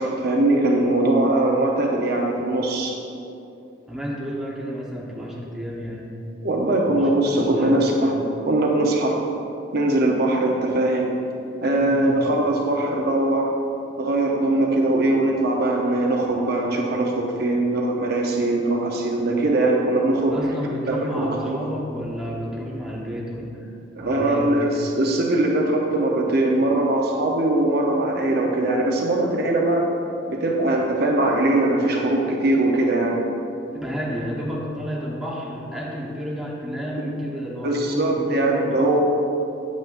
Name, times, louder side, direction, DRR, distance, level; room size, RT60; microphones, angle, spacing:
voice 1, 0.0-3.0 6.4-8.2 8.5-9.2 9.7-11.1 11.6-13.5 14.0-20.4 20.9-21.6 24.0-29.9 30.3-33.2 37.6-39.0, right 2 dB, 60° right, 0 dB, 0.8 m, -21 dB
voice 2, 3.9-6.1 6.9-7.8 11.8-12.2 20.3-23.6 24.0-24.8 33.7-39.0, equal, 5° right, -5 dB, 1.1 m, -31 dB
9.2 x 8.3 x 2.5 m, 2.7 s
head